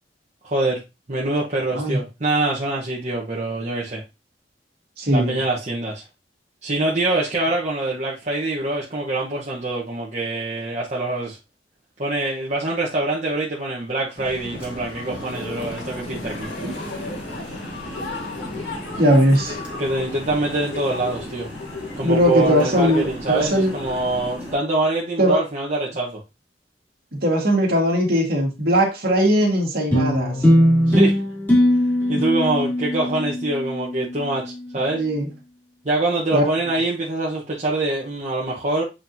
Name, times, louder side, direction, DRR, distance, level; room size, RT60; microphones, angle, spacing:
voice 1, 0.4-0.8 1.1-4.0 5.1-6.0 6.6-11.4 12.0-16.5 19.8-21.5 22.0-26.2 30.9-31.2 32.1-35.0 35.8-38.8, right 2 dB, 40° right, 1.1 m, -24 dB
voice 2, 5.0-5.4 16.6-16.7 19.0-19.6 22.0-23.7 25.2-25.4 27.1-30.4 32.1-32.2 34.9-35.3 36.3-36.4, equal, 60° right, 2.1 m, -19 dB
sound 1, 14.2-24.3, left 2 dB, 80° left, 1.5 m, -35 dB
sound 2, 14.5-24.6, equal, 5° right, 2.5 m, -38 dB
sound 3, 29.9-34.5, equal, 10° left, 2.9 m, -20 dB
7.4 x 5.1 x 2.8 m
head